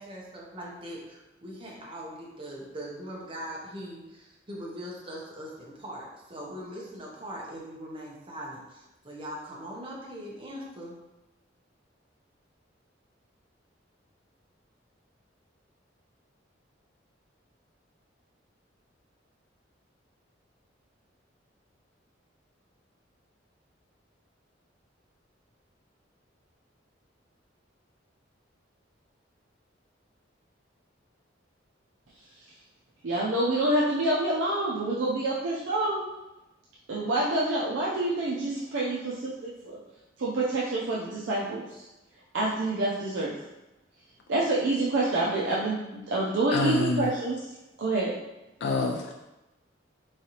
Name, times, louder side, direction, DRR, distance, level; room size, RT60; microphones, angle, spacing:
voice 1, 0.0-10.9, equal, 30° right, -4 dB, 0.8 m, -41 dB
voice 2, 33.0-36.1 36.9-39.8 40.2-41.9 42.3-43.4 44.3-47.5 47.8-48.1, right 2 dB, 80° right, -5 dB, 0.5 m, -27 dB
voice 3, 46.5-47.1 48.6-49.1, left 3 dB, 60° left, 1 dB, 0.3 m, -27 dB
3.8 x 3.2 x 2.8 m, 0.99 s
head